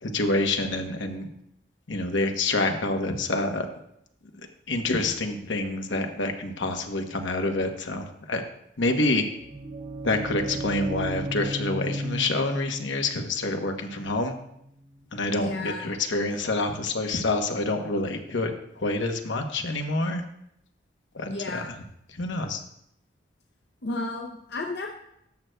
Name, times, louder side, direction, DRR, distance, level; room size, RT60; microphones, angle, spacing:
voice 1, 0.0-1.3 1.9-3.7 4.7-8.4 8.8-9.2 10.0-14.4 15.1-18.5 18.8-20.2 21.1-21.6 22.2-22.6, left 2 dB, 85° left, 4 dB, 1.0 m, -27 dB
sound 1, 9.2-15.0, right 1 dB, 30° right, 0.5 m, -35 dB
voice 2, 15.4-15.9 21.3-21.7 23.8-24.9, left 2 dB, 65° left, 1 dB, 0.7 m, -33 dB
12.5 x 7.6 x 2.3 m, 0.75 s
head